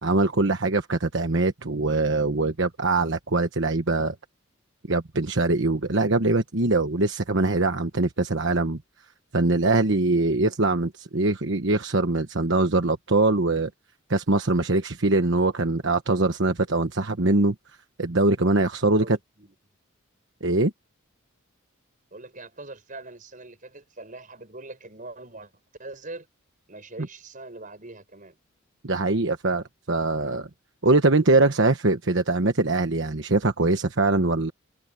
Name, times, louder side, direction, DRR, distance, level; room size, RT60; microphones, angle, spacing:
voice 1, 0.0-4.1 4.9-8.8 9.3-13.7 14.1-17.5 18.0-19.2 20.4-20.7 28.8-30.5 30.8-34.5, right 2 dB, 60° right, 1.2 m, -22 dB
voice 2, 18.8-19.5 22.1-25.5 25.8-26.3 26.7-28.4, right 2 dB, 40° right, 5.9 m, -42 dB
open air
head